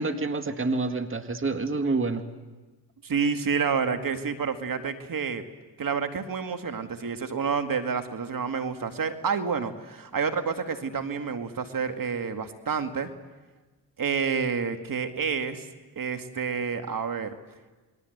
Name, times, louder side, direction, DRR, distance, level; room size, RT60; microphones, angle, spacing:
voice 1, 0.0-2.2, right 3 dB, 30° right, 7 dB, 2.0 m, -27 dB
voice 2, 3.0-5.4 5.8-13.1 14.0-15.7 16.0-17.3, right 6 dB, 50° right, 7 dB, 2.2 m, -29 dB
29.0 x 21.5 x 8.1 m, 1.2 s
supercardioid pair, 55°, 44 cm